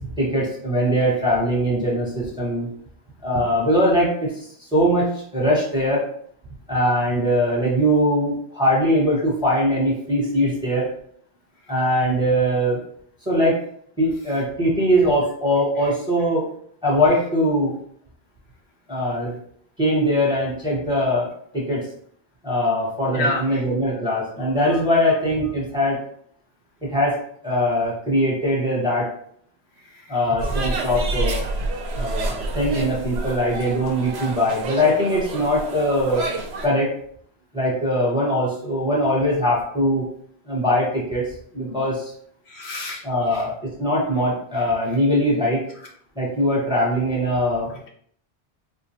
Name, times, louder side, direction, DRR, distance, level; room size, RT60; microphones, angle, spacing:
voice 1, 0.2-2.7 3.2-6.0 6.7-10.9 11.7-12.8 13.2-13.6 14.0-16.5 16.8-17.7 18.9-19.4 19.8-21.9 22.4-26.0 26.8-29.1 30.1-31.4 31.9-36.3 36.6-36.9 37.5-40.0 40.4-41.2 41.5-42.1 43.0-43.5 43.8-45.6 46.1-47.7, equal, 5° right, -6 dB, 1.2 m, -21 dB
voice 2, 23.1-23.6 29.9-30.2 42.5-43.0 43.3-43.4 47.7-47.9, left 2 dB, 80° left, 0 dB, 1.0 m, -29 dB
sound 1, 30.4-36.7, right 2 dB, 80° right, 0.8 m, -28 dB
4.3 x 2.1 x 2.8 m, 0.62 s
omnidirectional pair, 1.1 m